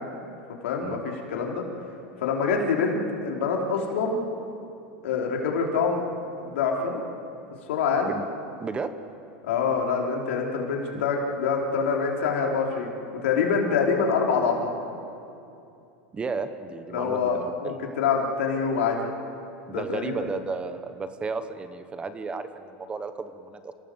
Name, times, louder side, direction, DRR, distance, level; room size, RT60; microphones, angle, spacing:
voice 1, 0.6-1.7 2.2-4.2 5.0-6.0 6.4-7.0 7.7-8.1 9.4-14.7 16.9-19.0 19.7-20.0, left 5 dB, 90° left, 0 dB, 4.4 m, -25 dB
voice 2, 8.6-8.9 10.9-11.0 16.1-17.7 19.7-23.7, right 4 dB, 15° right, 10 dB, 1.2 m, -33 dB
29.5 x 17.0 x 8.0 m, 2.7 s
supercardioid pair, 145°, 7 cm